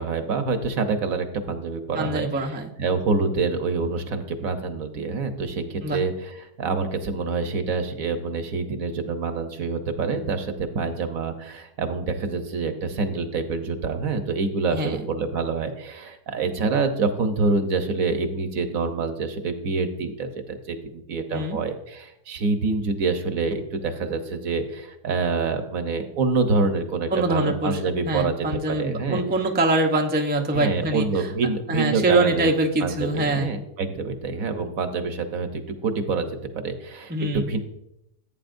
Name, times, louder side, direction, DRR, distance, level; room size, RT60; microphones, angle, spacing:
voice 1, 0.0-28.3 28.7-29.2 30.5-32.5 32.8-36.3 36.5-37.6, right 4 dB, 60° right, 7 dB, 1.3 m, -26 dB
voice 2, 1.9-2.7 5.8-6.0 14.7-15.0 21.3-21.6 27.1-27.8 28.0-31.3 31.7-33.5 37.1-37.5, right 2 dB, 10° right, 3 dB, 0.5 m, -24 dB
15.0 x 8.6 x 2.6 m, 0.82 s
omnidirectional pair, 1.7 m